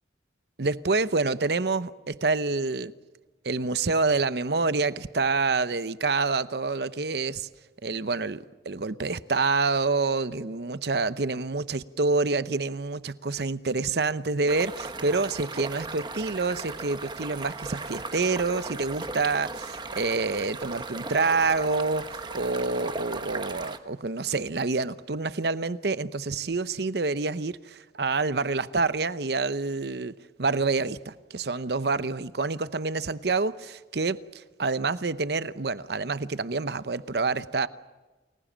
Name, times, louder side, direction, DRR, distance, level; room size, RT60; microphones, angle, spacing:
voice 1, 0.6-2.9 3.4-7.5 7.8-30.1 30.4-37.7, right 3 dB, 65° right, 0.8 m, -27 dB
sound 1, 14.5-23.8, right 3 dB, 25° right, 1.2 m, -37 dB
29.5 x 21.0 x 7.4 m
head